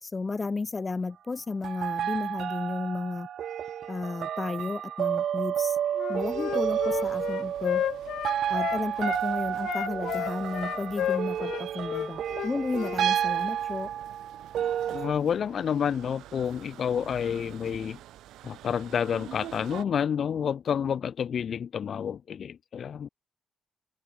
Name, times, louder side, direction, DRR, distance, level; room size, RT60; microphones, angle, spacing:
voice 1, 0.0-3.3 3.9-5.8 6.1-7.8 8.5-13.9, left 3 dB, 25° left, 1.7 m, -33 dB
sound 1, 1.6-15.1, right 10 dB, 65° right, 0.3 m, -31 dB
Wind instrument woodwind instrument, 6.0-9.2 9.6-13.0, left 11 dB, 75° left, 0.9 m, -32 dB
sound 2, 6.2-19.8, right 14 dB, 85° right, 2.0 m, -49 dB
voice 2, 14.6-18.0 18.4-23.1, left 8 dB, 55° left, 0.3 m, -29 dB
open air
cardioid pair, 90°, 0 cm